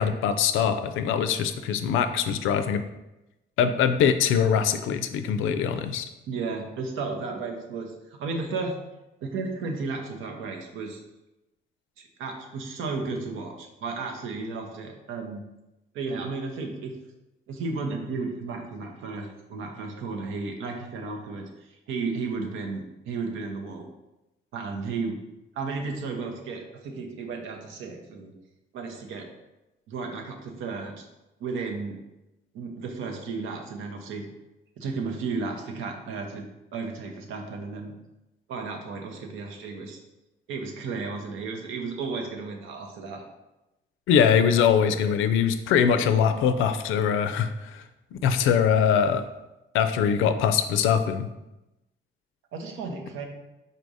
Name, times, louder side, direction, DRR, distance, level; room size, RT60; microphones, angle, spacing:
voice 1, 0.0-2.8 3.6-6.1 44.1-47.8 48.1-49.2 49.7-51.3, left 7 dB, 85° left, 10 dB, 0.4 m, -22 dB
voice 2, 6.3-8.8 9.2-11.0 12.2-15.4 15.9-16.9 17.5-23.9 24.5-25.2 25.5-28.3 28.7-29.3 29.9-31.0 31.4-32.0 32.5-34.3 34.8-37.9 38.5-40.0 40.5-43.2 52.5-53.3, right 4 dB, 85° right, 2 dB, 0.8 m, -33 dB
4.1 x 2.6 x 4.7 m, 0.97 s
cardioid pair, 90°, 20 cm